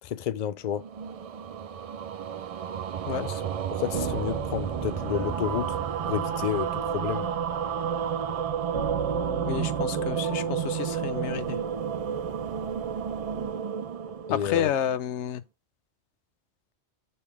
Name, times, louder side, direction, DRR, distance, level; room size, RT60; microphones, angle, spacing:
voice 1, 0.0-0.8 3.2-3.4 3.7-5.8 6.1-7.3 14.3-14.7, left 10 dB, 55° left, 0.5 m, -30 dB
sound 1, 0.7-15.1, right 7 dB, 55° right, 0.4 m, -31 dB
sound 2, 3.9-13.5, right 5 dB, 80° right, 1.7 m, -37 dB
voice 2, 9.4-11.6 14.3-15.4, left 9 dB, 85° left, 1.0 m, -30 dB
7.0 x 3.6 x 4.7 m
omnidirectional pair, 1.2 m